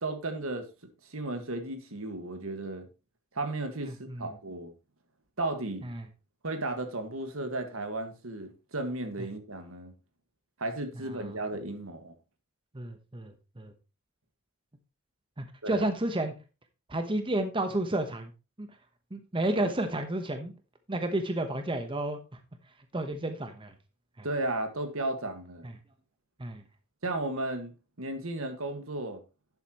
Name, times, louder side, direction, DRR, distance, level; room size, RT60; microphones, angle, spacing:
voice 1, 0.0-0.7 1.0-2.9 3.3-4.7 5.4-5.9 6.4-9.9 10.6-12.1 15.6-15.9 24.2-25.7 27.0-29.2, right 2 dB, 70° right, 1.8 m, -34 dB
voice 2, 3.8-4.3 5.8-6.0 11.1-11.3 12.7-13.7 15.4-16.3 16.9-18.3 18.6-18.7 19.1-20.5 20.9-22.2 22.9-23.7 24.2-24.3 25.6-25.7 26.4-26.6, right 1 dB, 25° right, 1.1 m, -31 dB
11.5 x 8.1 x 3.0 m
head